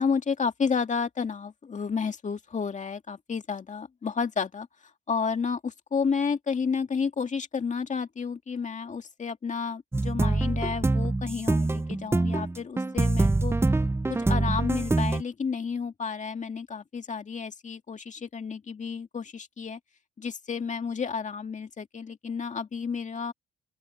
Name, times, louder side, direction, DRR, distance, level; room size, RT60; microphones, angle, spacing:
voice 1, 0.0-4.7 5.1-13.5 14.1-19.8 20.2-23.3, left 5 dB, 35° left, 2.1 m, -31 dB
sound 1, 9.9-15.2, right 2 dB, 10° right, 0.7 m, -25 dB
open air
cardioid pair, 90°, 20 cm